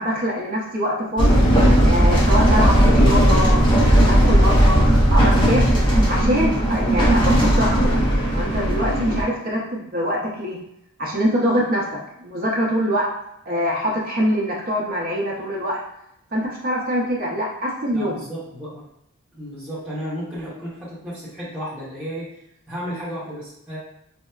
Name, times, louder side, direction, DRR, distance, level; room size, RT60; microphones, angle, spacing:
voice 1, 0.0-1.4 1.8-5.7 6.1-8.0 8.3-10.6 11.0-11.8 12.2-13.0 13.5-15.8 16.3-18.2, equal, 40° right, -4 dB, 0.6 m, -24 dB
sound 1, 1.2-9.2, equal, 20° left, 0.5 m, -16 dB
voice 2, 17.9-18.8 19.3-22.3 22.7-23.8, equal, 5° right, -10 dB, 0.8 m, -33 dB
4.2 x 2.0 x 2.3 m, 0.79 s
head